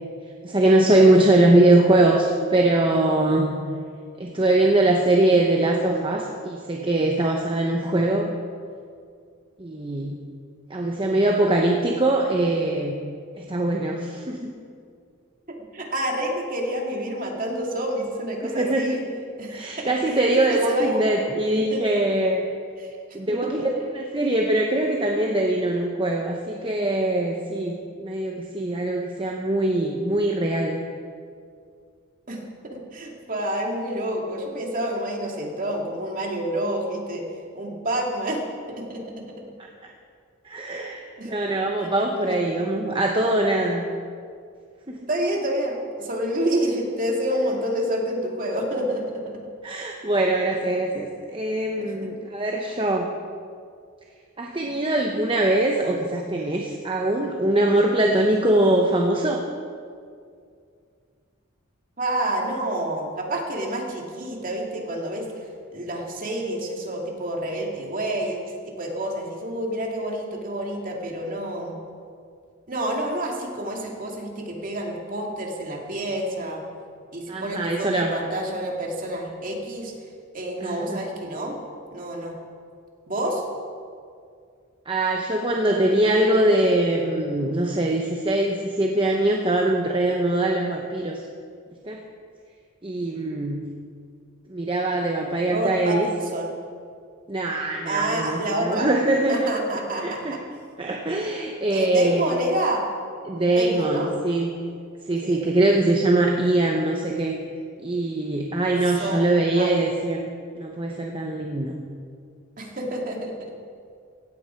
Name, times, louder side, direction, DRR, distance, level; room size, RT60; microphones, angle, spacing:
voice 1, 0.4-3.6 4.2-8.4 9.6-10.2 10.7-12.9 13.4-14.5 18.4-19.0 19.5-22.5 23.1-23.7 23.9-30.8 39.6-39.9 40.4-43.9 44.9-45.1 49.6-53.1 54.4-59.4 77.3-78.1 80.6-81.0 84.9-91.2 91.8-92.0 92.8-93.7 94.5-96.1 97.3-99.5 100.0-100.4 100.8-102.3 103.2-104.6 105.1-107.4 107.8-110.3 110.6-111.8, right 1 dB, 25° right, 1 dB, 0.9 m, -22 dB
voice 2, 15.5-19.0 19.4-19.9 20.5-21.1 21.5-21.8 22.8-23.0 23.3-23.7 32.3-37.2 37.5-38.4 38.8-39.2 41.2-41.3 42.2-42.5 45.1-49.3 50.5-50.6 51.8-52.1 62.0-65.3 65.7-71.8 72.7-76.6 77.1-79.9 80.3-81.6 81.9-82.4 83.1-83.4 95.5-96.6 97.9-98.9 99.3-100.2 101.7-102.9 103.5-104.1 105.2-105.4 108.8-109.9 112.6-113.3, right 1 dB, 40° right, 0 dB, 2.6 m, -28 dB
16.5 x 16.0 x 4.6 m, 2.2 s
head